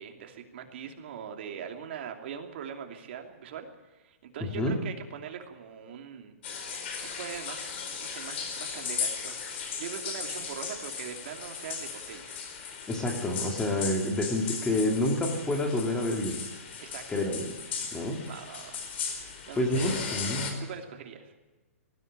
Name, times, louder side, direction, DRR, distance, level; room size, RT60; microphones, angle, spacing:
voice 1, 0.0-3.7 3.9-6.3 7.2-12.4 16.8-17.0 18.2-18.8 19.5-20.0 20.6-21.3, right 8 dB, 50° right, 4 dB, 2.8 m, -41 dB
voice 2, 4.4-4.8 12.9-16.4 17.1-17.6 17.9-18.2 19.6-20.6, left 1 dB, 10° left, 3 dB, 2.3 m, -28 dB
sound 1, 6.4-20.5, left 6 dB, 50° left, 4.6 m, -37 dB
19.0 x 14.0 x 9.6 m, 1.1 s
hypercardioid pair, 160°, 8 cm